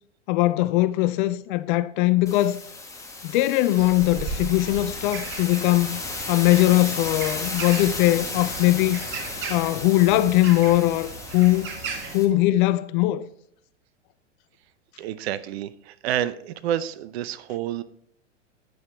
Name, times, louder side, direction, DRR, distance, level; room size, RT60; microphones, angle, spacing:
voice 1, 0.3-2.6 3.2-6.0 6.3-9.0 9.5-11.7 12.1-13.3, left 16 dB, 45° left, 0.5 m, -20 dB
sound 1, 2.3-12.3, left 3 dB, 10° left, 1.4 m, -35 dB
bunch of birds, 3.8-12.2, right 4 dB, 30° right, 1.5 m, -36 dB
voice 2, 15.0-17.8, right 11 dB, 55° right, 0.7 m, -29 dB
9.5 x 7.7 x 3.3 m
hypercardioid pair, 100°, 37 cm